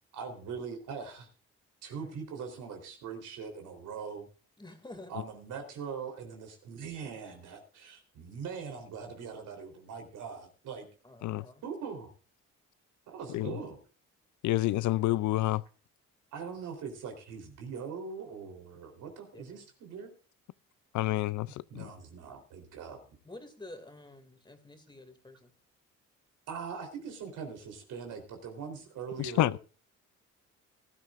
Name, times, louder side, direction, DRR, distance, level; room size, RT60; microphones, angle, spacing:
voice 1, 0.1-1.3 1.8-4.3 5.1-10.9 11.6-12.1 13.1-13.8 16.3-20.1 21.7-23.0 26.5-29.6, right 6 dB, 80° right, 3.7 m, -41 dB
voice 2, 4.6-5.1 11.0-11.6 19.3-19.6 23.2-25.5, left 2 dB, 15° left, 2.3 m, -49 dB
voice 3, 14.4-15.6 20.9-21.9 29.2-29.6, left 16 dB, 75° left, 0.5 m, -28 dB
18.5 x 12.5 x 2.5 m
cardioid pair, 90°, 30 cm